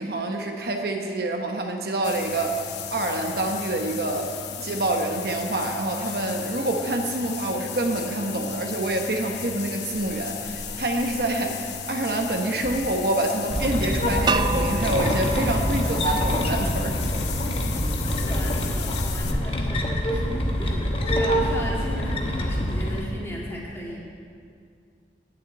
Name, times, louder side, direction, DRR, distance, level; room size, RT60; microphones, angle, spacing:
voice 1, 0.0-2.6 2.9-4.3 4.6-11.5 11.9-17.0, right 1 dB, 55° right, 2 dB, 1.0 m, -27 dB
sound 1, 2.0-19.3, left 6 dB, 70° left, 0.8 m, -35 dB
voice 2, 12.3-12.7 18.1-24.0, equal, 15° left, -4 dB, 2.0 m, -36 dB
sound 2, 13.5-23.0, equal, 30° left, 1.0 m, -25 dB
sound 3, 14.3-17.2, right 4 dB, 25° right, 0.3 m, -30 dB
9.5 x 7.2 x 8.8 m, 2.3 s
head